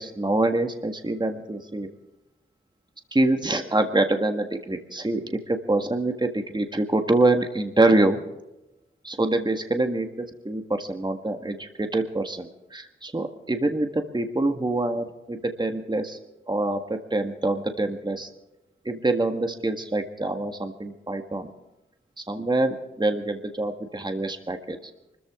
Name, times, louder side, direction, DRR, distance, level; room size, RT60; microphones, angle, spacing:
voice 1, 0.0-1.9 3.1-8.2 9.0-16.2 16.5-18.3 18.8-21.5 22.3-24.8, right 2 dB, 20° right, 5 dB, 1.7 m, -25 dB
24.0 x 14.5 x 3.7 m, 0.96 s
cardioid pair, 55°, 21 cm